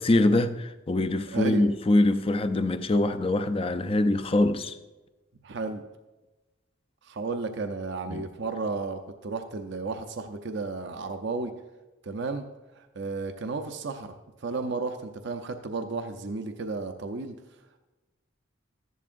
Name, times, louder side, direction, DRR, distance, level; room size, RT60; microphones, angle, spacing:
voice 1, 0.0-4.8 8.1-8.2, left 2 dB, 25° left, 0.5 m, -24 dB
voice 2, 1.3-1.7 5.4-5.8 7.0-11.5 12.0-12.5 12.7-14.1 14.4-17.4, right 3 dB, 60° right, 0.6 m, -33 dB
14.0 x 11.0 x 2.5 m
head